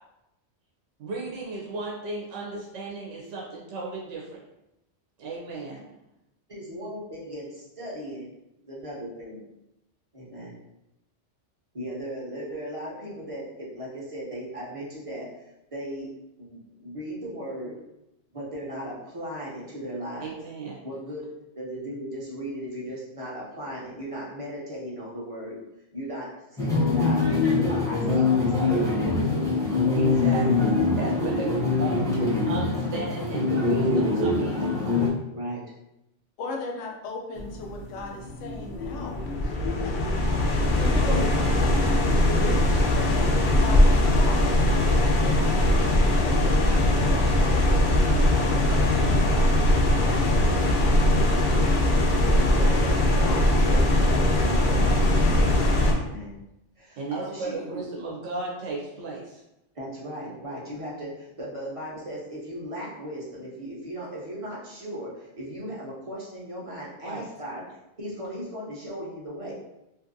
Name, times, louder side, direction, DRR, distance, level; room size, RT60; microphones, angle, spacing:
voice 1, 1.0-4.4 5.2-5.9 20.2-20.9 29.9-34.7 57.0-59.4 67.0-67.3, right 3 dB, 80° right, -3 dB, 1.0 m, -34 dB
voice 2, 6.5-8.3 8.7-9.4 10.1-10.5 11.7-16.1 16.4-17.8 18.3-20.3 20.8-25.6 25.9-27.2 27.6-29.8 35.3-35.6 41.0-41.5 52.6-55.0 55.3-56.4 56.8-57.6 59.7-67.6 67.9-69.5, equal, 35° right, -5 dB, 0.6 m, -37 dB
sound 1, 26.6-35.1, left 3 dB, 5° left, 0.4 m, -23 dB
voice 3, 36.4-39.6 39.8-40.3 40.5-41.3 41.6-41.7 42.1-44.5 45.0-49.5 50.1-50.8 52.2-52.7 53.2-53.4, left 3 dB, 85° left, 1 dB, 0.9 m, -38 dB
sound 2, 37.4-55.9, left 1 dB, 60° left, 0.6 m, -21 dB
2.6 x 2.6 x 2.6 m, 0.88 s
omnidirectional pair, 1.2 m